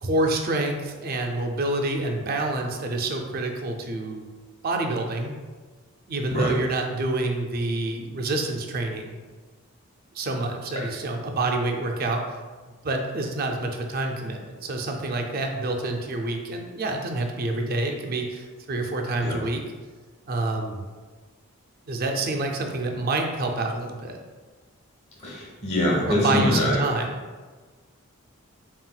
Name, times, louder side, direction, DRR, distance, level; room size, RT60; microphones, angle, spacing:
voice 1, 0.0-4.3 4.6-5.4 6.1-9.2 10.1-12.2 12.8-19.6 20.3-20.8 21.9-24.2 26.1-27.2, right 2 dB, 40° right, 3 dB, 0.4 m, -27 dB
voice 2, 25.2-26.8, left 1 dB, 30° left, -3 dB, 0.9 m, -24 dB
4.2 x 3.8 x 2.2 m, 1.4 s
head